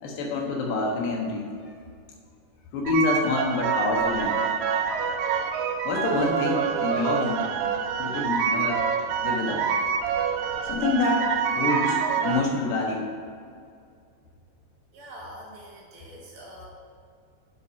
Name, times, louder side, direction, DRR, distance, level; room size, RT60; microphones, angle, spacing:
voice 1, 0.0-1.6 2.7-4.6 5.9-7.5 8.0-8.9 9.2-9.7 10.6-13.2, left 3 dB, 85° left, 0 dB, 3.5 m, -27 dB
sound 1, 2.9-12.4, right 7 dB, 90° right, 2.0 m, -26 dB
voice 2, 14.9-16.7, equal, 70° right, -4 dB, 3.9 m, -44 dB
9.3 x 5.6 x 6.2 m, 2.3 s
omnidirectional pair, 4.8 m